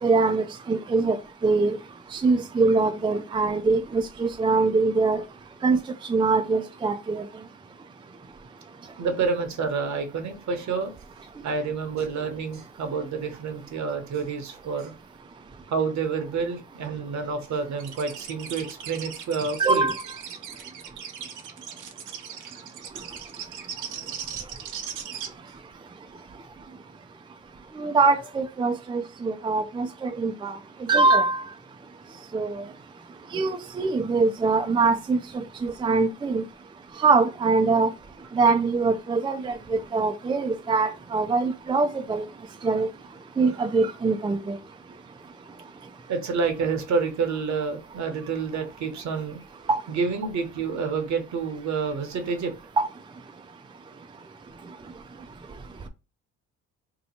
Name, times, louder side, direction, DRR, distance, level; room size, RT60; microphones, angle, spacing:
voice 1, 0.0-1.2 1.4-1.8 2.1-5.2 5.6-5.8 6.1-7.2 19.6-19.9 27.8-31.4 32.3-32.7 33.3-36.4 37.0-37.9 38.3-42.2 42.6-42.9 43.4-44.6 49.7-49.8 52.8-52.9, right 3 dB, 15° right, 0.4 m, -23 dB
voice 2, 9.0-10.9 11.4-14.9 15.7-19.9 24.0-24.1 46.1-49.4 49.9-52.5, right 5 dB, 65° right, 1.0 m, -28 dB
sound 1, 17.8-25.3, right 8 dB, 90° right, 0.7 m, -38 dB
2.9 x 2.2 x 4.2 m
cardioid pair, 90°, 30 cm